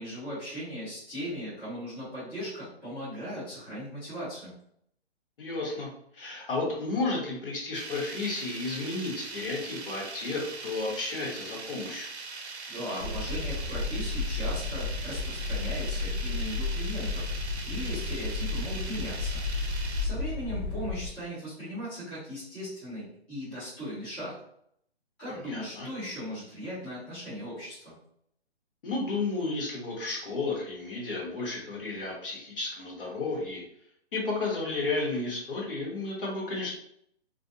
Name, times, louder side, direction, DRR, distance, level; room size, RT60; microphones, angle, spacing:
voice 1, 0.0-4.5 12.7-17.3 17.6-19.4 20.0-24.3 25.2-27.9, equal, 5° left, -16 dB, 0.7 m, -38 dB
voice 2, 5.4-12.1 25.3-25.9 28.8-33.6 34.1-36.8, left 3 dB, 55° left, -3 dB, 1.1 m, -32 dB
sound 1, 7.7-20.1, right 4 dB, 80° right, 0.6 m, -41 dB
sound 2, 13.0-21.1, left 3 dB, 85° left, 0.6 m, -32 dB
2.5 x 2.2 x 2.6 m, 0.70 s
hypercardioid pair, 160°, 33 cm